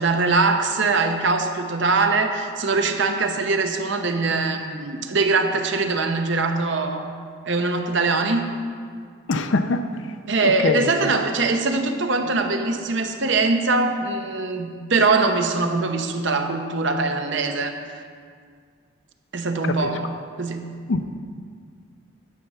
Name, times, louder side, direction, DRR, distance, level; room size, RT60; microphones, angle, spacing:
voice 1, 0.0-7.1 7.4-8.6 10.3-17.8 19.3-20.1 20.4-20.7, right 3 dB, 60° right, 6 dB, 0.8 m, -22 dB
voice 2, 9.3-9.8 10.6-10.8 20.9-21.0, left 3 dB, 60° left, 9 dB, 0.5 m, -21 dB
10.0 x 7.8 x 5.6 m, 2.1 s
head